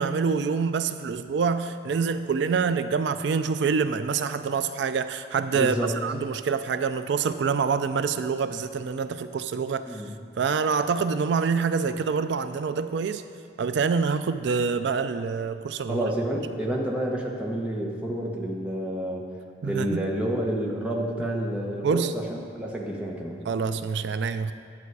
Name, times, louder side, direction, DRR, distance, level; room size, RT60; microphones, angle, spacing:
voice 1, 0.0-5.8 6.0-10.0 10.4-13.2 13.6-16.0 19.6-20.0 21.8-22.1 23.5-24.5, right 5 dB, 80° right, 11 dB, 0.4 m, -26 dB
voice 2, 5.5-5.9 9.9-10.1 15.9-19.3 19.6-23.4, right 1 dB, 5° right, -2 dB, 1.1 m, -29 dB
10.5 x 8.1 x 4.7 m, 2.2 s
head